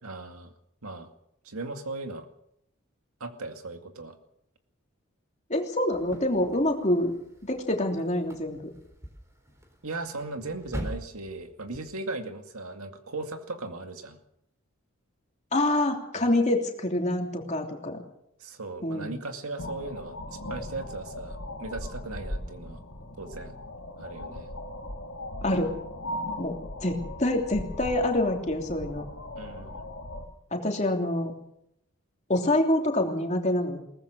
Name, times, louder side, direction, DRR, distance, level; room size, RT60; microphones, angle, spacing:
voice 1, 0.0-0.5 0.8-1.1 1.4-2.3 3.2-4.2 9.8-14.2 16.1-16.3 18.4-22.8 23.2-23.6 24.0-24.5 29.4-29.9, right 2 dB, 90° right, 6 dB, 2.3 m, -38 dB
voice 2, 5.5-7.1 7.4-8.6 15.5-18.0 18.8-19.2 25.4-25.7 26.4-29.0 30.5-31.3 32.3-33.8, left 1 dB, 30° left, 3 dB, 3.1 m, -26 dB
sound 1, 5.9-11.8, equal, 15° right, 3.5 m, -43 dB
sound 2, 19.6-30.2, left 1 dB, 70° left, 3.4 m, -38 dB
21.5 x 19.0 x 6.5 m, 0.77 s
head